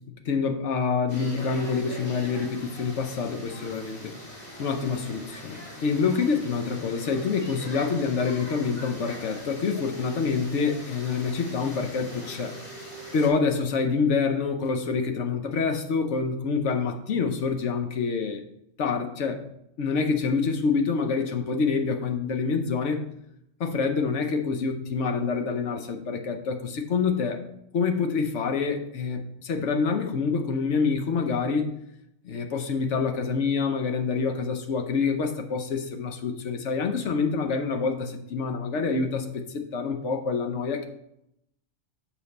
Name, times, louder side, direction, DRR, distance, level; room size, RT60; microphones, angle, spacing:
voice 1, 0.2-4.1 4.6-12.6 13.1-18.4 18.8-19.4 19.8-23.0 23.6-27.4 27.7-31.7 32.2-40.9, left 5 dB, 65° left, 6 dB, 1.1 m, -27 dB
sound 1, 1.1-13.3, left 1 dB, 40° left, 2.2 m, -41 dB
7.3 x 5.3 x 4.1 m, 0.79 s
omnidirectional pair, 1.3 m